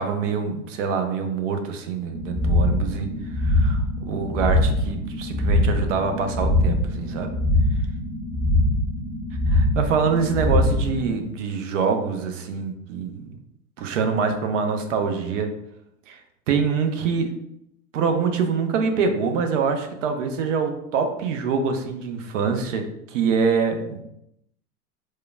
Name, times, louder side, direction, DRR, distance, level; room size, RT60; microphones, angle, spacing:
voice 1, 0.0-7.3 9.5-13.3 13.8-15.5 16.1-16.2 16.5-17.3 17.9-24.0, right 5 dB, 55° right, 5 dB, 0.7 m, -25 dB
sound 1, 2.1-11.2, left 1 dB, 5° right, 0.6 m, -23 dB
4.6 x 2.1 x 2.3 m, 0.78 s
figure-of-eight pair, 90°, 45 cm